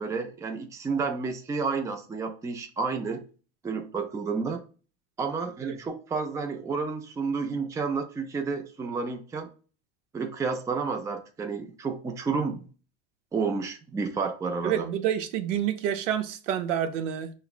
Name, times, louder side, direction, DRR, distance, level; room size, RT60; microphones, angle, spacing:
voice 1, 0.0-3.2 3.6-4.6 5.2-9.5 10.1-12.7 13.3-14.8, right 4 dB, 10° right, 0.3 m, -30 dB
voice 2, 14.6-17.3, right 10 dB, 85° right, 0.6 m, -28 dB
5.6 x 2.1 x 2.4 m
supercardioid pair, 110°, 36 cm